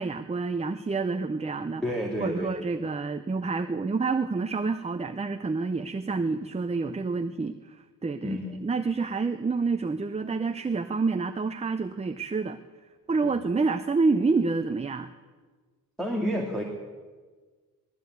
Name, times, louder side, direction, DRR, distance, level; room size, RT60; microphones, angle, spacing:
voice 1, 0.0-1.8 2.2-7.8 8.0-12.6 13.1-15.1, right 4 dB, 20° right, 9 dB, 0.7 m, -28 dB
voice 2, 1.8-2.6 8.2-8.6 13.2-13.4 16.0-16.6, equal, ahead, -1 dB, 2.5 m, -30 dB
19.5 x 14.5 x 9.4 m, 1.4 s
wide cardioid pair, 135°, 35 cm